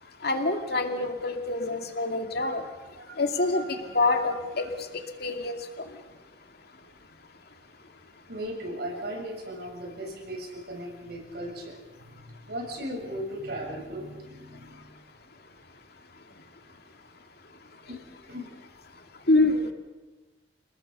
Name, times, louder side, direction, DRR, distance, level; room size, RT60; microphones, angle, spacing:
voice 1, 0.2-2.6 3.2-4.7 5.2-5.6 19.3-19.7, left 2 dB, 60° left, 5 dB, 2.4 m, -26 dB
voice 2, 3.5-4.2 8.3-11.8 12.5-14.8 17.9-18.0 18.3-18.5, equal, 65° right, 1 dB, 7.1 m, -37 dB
29.0 x 19.5 x 6.8 m, 1.2 s
head